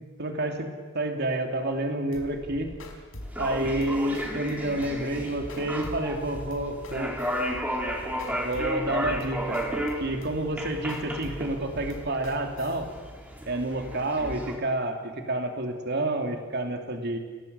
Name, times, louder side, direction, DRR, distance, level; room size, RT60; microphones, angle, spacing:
voice 1, 0.2-2.7 3.4-7.1 8.3-9.6 10.0-12.9 13.5-17.2, right 1 dB, 55° right, 4 dB, 2.9 m, -29 dB
sound 1, 2.1-12.8, left 1 dB, 80° left, 4.7 m, -43 dB
sound 2, 3.2-14.6, equal, 10° right, 3.7 m, -34 dB
29.0 x 18.0 x 8.2 m, 1.5 s
head